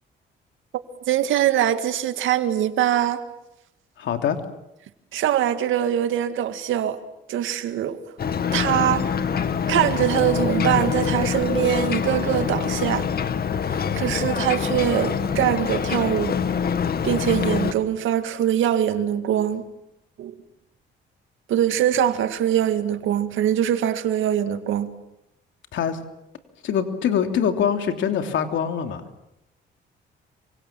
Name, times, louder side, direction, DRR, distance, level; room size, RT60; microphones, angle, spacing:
voice 1, 0.7-3.2 5.1-7.0 7.3-8.0 8.5-9.1 9.7-13.1 13.7-16.4 17.0-19.6 20.2-20.3 21.5-24.9, right 10 dB, 80° right, 2.0 m, -23 dB
voice 2, 4.0-4.4 25.7-26.0 26.6-29.0, left 8 dB, 75° left, 3.2 m, -23 dB
Ocean, 8.2-17.7, left 7 dB, 50° left, 2.0 m, -25 dB
27.5 x 25.0 x 7.7 m
cardioid pair, 90°, 20 cm